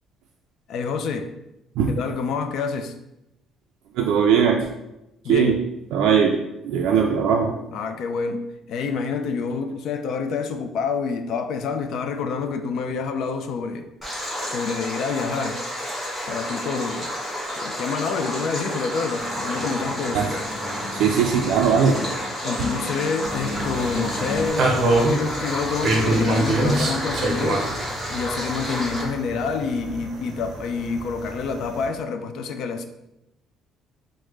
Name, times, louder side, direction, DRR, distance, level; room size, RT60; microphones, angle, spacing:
voice 1, 0.7-1.3 1.9-2.9 5.2-5.6 7.7-13.9 14.5-15.6 16.3-17.1 17.5-20.3 22.4-27.7 28.1-32.9, left 5 dB, 60° left, 8 dB, 0.3 m, -27 dB
voice 2, 4.0-4.7 5.3-5.6 5.9-6.4 6.6-7.6 20.1-20.3 20.9-22.0, right 7 dB, 90° right, 1 dB, 0.3 m, -19 dB
Stream, 14.0-29.0, equal, 5° left, 1.4 m, -31 dB
sound 1, 19.2-24.5, left 2 dB, 25° left, 0.8 m, -35 dB
sound 2, 23.2-31.9, right 2 dB, 40° right, 0.6 m, -26 dB
4.8 x 2.1 x 3.2 m, 0.90 s
cardioid pair, 165°, 0 cm